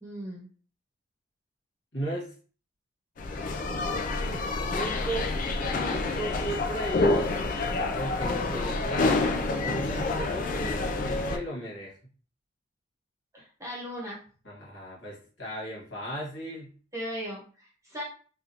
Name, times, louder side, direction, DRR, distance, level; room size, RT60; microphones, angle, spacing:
voice 1, 0.0-0.5 13.3-14.2 16.9-18.0, equal, 15° right, -4 dB, 1.1 m, -37 dB
voice 2, 1.9-2.3 4.7-5.3 5.9-7.5 7.9-9.2 9.6-11.9 14.5-16.7, right 1 dB, 60° left, -5 dB, 1.6 m, -36 dB
sound 1, 3.2-11.4, left 3 dB, 40° left, 0.3 m, -28 dB
3.5 x 2.4 x 2.8 m, 0.40 s
head